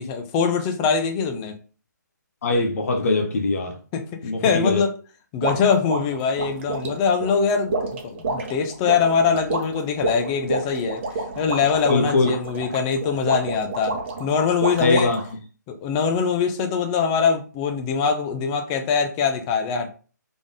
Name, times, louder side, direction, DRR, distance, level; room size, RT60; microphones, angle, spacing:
voice 1, 0.0-1.6 3.9-4.0 4.4-4.9 5.3-15.1 15.7-19.9, left 6 dB, 20° left, 0.7 m, -23 dB
voice 2, 2.4-3.8 4.2-4.8 11.9-12.3 14.8-15.2, left 2 dB, 50° left, 0.9 m, -21 dB
sound 1, 5.4-15.3, right 3 dB, 35° right, 1.0 m, -29 dB
4.0 x 3.5 x 3.6 m
figure-of-eight pair, 145°, 10 cm